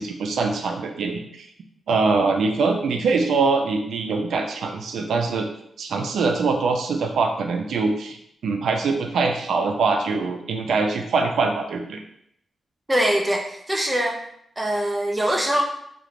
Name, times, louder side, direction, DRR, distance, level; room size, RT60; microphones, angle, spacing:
voice 1, 0.0-1.5 1.9-5.5 5.8-8.2 8.4-12.0, right 4 dB, 85° right, 4 dB, 0.3 m, -23 dB
voice 2, 12.9-14.2 14.6-15.6, right 1 dB, 15° right, 2 dB, 0.4 m, -23 dB
2.4 x 2.1 x 3.1 m, 0.73 s
wide cardioid pair, 125°, 0 cm